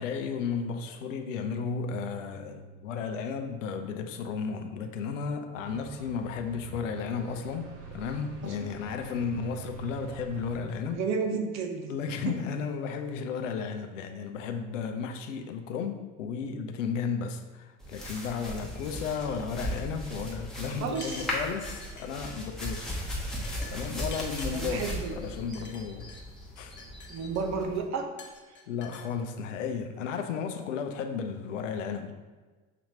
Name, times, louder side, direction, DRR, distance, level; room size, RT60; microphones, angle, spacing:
voice 1, 0.0-11.0 11.9-22.9 23.2-23.3 23.7-26.1 26.6-26.7 28.7-32.1, left 6 dB, 75° left, 7 dB, 0.5 m, -34 dB
sound 1, 5.5-10.6, right 4 dB, 65° right, 1.0 m, -45 dB
voice 2, 10.9-11.9 12.3-12.4 20.8-21.3 24.5-25.2 27.1-28.1, right 5 dB, 45° right, 4 dB, 0.7 m, -32 dB
sound 2, 17.8-27.8, equal, ahead, 1.0 m, -37 dB
sound 3, 20.9-22.4 22.6-23.0 23.4-24.9 25.5-26.2 26.6-27.6 28.2-29.0, left 5 dB, 30° left, 0.8 m, -47 dB
6.0 x 2.8 x 2.7 m, 1.3 s
figure-of-eight pair, 60°, 38 cm